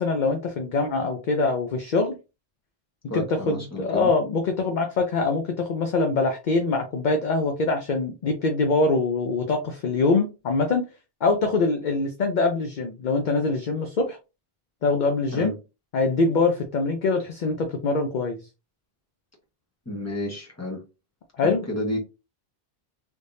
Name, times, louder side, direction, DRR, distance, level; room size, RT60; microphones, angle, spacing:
voice 1, 0.0-2.2 3.1-10.9 11.2-14.2 14.8-15.5 15.9-18.4 21.4-21.7, left 3 dB, 55° left, 0.7 m, -24 dB
voice 2, 3.1-4.1 15.3-15.5 19.8-20.8 21.4-22.0, left 1 dB, 15° left, 1.3 m, -31 dB
3.3 x 3.3 x 2.7 m
omnidirectional pair, 1.0 m